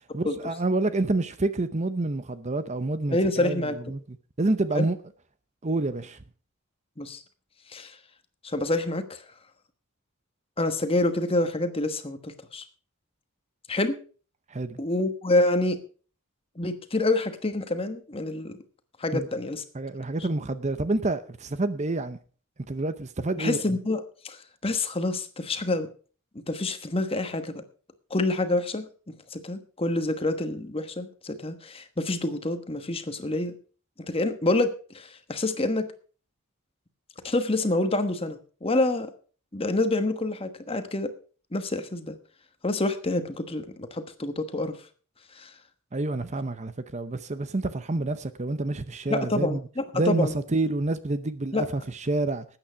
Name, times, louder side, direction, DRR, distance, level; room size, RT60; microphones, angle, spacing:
voice 1, 0.1-3.6 3.9-4.0 4.4-5.0 5.6-6.2 14.5-14.8 19.1-19.3 19.7-22.2 22.7-23.6 45.9-49.6 49.9-52.4, right 2 dB, 30° right, 0.7 m, -28 dB
voice 2, 3.1-3.8 4.7-4.9 7.0-7.2 7.7-8.0 8.4-9.2 10.6-12.6 13.7-14.0 14.8-15.8 16.6-18.6 19.0-19.6 23.4-24.4 24.6-25.9 26.5-27.6 28.1-28.9 29.3-33.5 34.1-35.9 37.2-39.1 39.5-41.1 41.5-42.2 42.6-44.8 45.3-45.5 49.1-50.3 51.5-51.6, left 2 dB, 25° left, 1.2 m, -27 dB
13.0 x 9.0 x 5.6 m
head